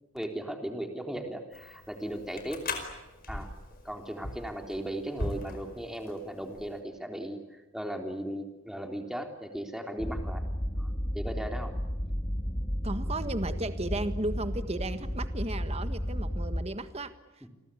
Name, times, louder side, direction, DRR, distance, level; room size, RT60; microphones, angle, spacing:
voice 1, 0.1-2.6 3.3-3.5 3.8-10.4 10.8-11.8, right 1 dB, ahead, 4 dB, 3.4 m, -37 dB
sound 1, 1.5-6.8, left 2 dB, 45° left, 5.0 m, -40 dB
sound 2, 10.0-16.6, equal, 20° left, 1.9 m, -33 dB
voice 2, 12.8-17.5, right 2 dB, 30° right, 10 dB, 1.5 m, -35 dB
30.0 x 22.0 x 8.5 m, 1.0 s
head